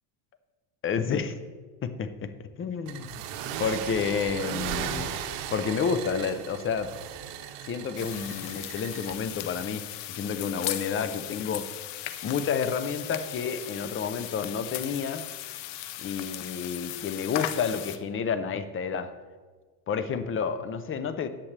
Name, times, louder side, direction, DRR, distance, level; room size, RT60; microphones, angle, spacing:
voice 1, 0.8-1.3 1.8-2.3 2.6-3.2 3.6-5.2 5.5-6.9 7.7-11.7 12.2-15.2 16.0-19.1 19.9-21.3, left 6 dB, 25° left, 11 dB, 0.6 m, -30 dB
sound 1, 2.9-9.1, right 9 dB, 75° right, 1.1 m, -36 dB
sound 2, 8.0-18.0, left 13 dB, 60° left, 0.8 m, -37 dB
13.5 x 8.6 x 3.3 m, 1.4 s
cardioid pair, 130°, 49 cm